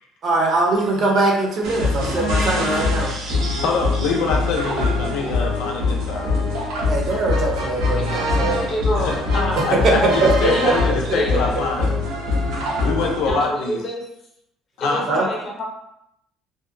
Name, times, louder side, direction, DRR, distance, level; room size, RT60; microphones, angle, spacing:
voice 1, 0.2-3.6 6.9-8.6 9.8-9.9 10.7-10.8 12.5-12.6 15.1-15.2, right 2 dB, 45° right, 0 dB, 0.6 m, -22 dB
sound 1, 1.6-13.3, left 3 dB, 90° right, 0.7 m, -23 dB
voice 2, 3.6-6.4 9.0-9.2 9.6-11.9 12.8-13.8 14.8-15.1, left 4 dB, 80° left, 0 dB, 0.5 m, -24 dB
voice 3, 8.0-8.3 8.7-11.6 13.3-14.0 14.8-15.6, equal, 35° left, -1 dB, 0.7 m, -27 dB
2.6 x 2.1 x 2.5 m, 0.79 s
cardioid pair, 150°, 0 cm